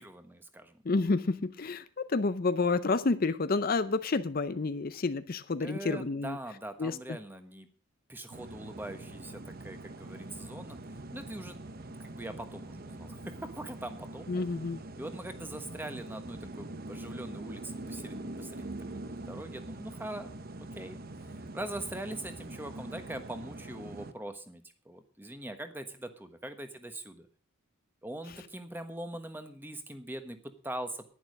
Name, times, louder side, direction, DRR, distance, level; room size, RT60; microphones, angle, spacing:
voice 1, 0.0-0.8 5.6-7.7 8.1-10.8 11.1-11.6 12.0-14.4 15.0-20.3 20.6-21.0 21.2-27.3 28.0-31.1, right 1 dB, 10° right, 1.2 m, -42 dB
voice 2, 0.8-6.4 6.8-7.0 14.3-14.8, left 3 dB, 45° left, 0.5 m, -29 dB
sound 1, 8.3-24.1, right 2 dB, 45° right, 0.9 m, -44 dB
11.0 x 10.5 x 6.4 m
head